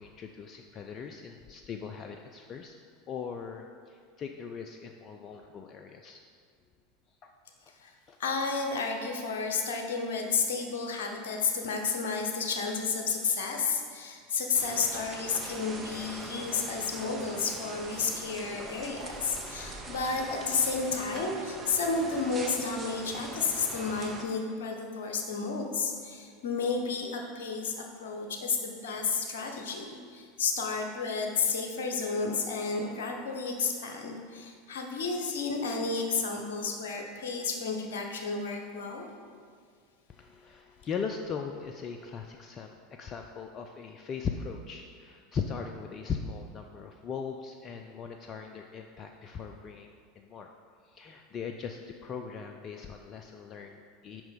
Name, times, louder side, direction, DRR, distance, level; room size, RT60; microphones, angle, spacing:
voice 1, 0.0-2.8 3.1-6.2 7.1-7.3 8.1-8.2 40.1-50.5 50.8-54.3, left 6 dB, 35° left, 4 dB, 0.4 m, -39 dB
voice 2, 8.2-39.1, left 4 dB, 65° left, 2 dB, 0.9 m, -31 dB
sound 1, 14.5-24.2, right 2 dB, 25° right, 0.9 m, -42 dB
6.0 x 5.4 x 5.1 m, 2.1 s
figure-of-eight pair, 80°, 0 cm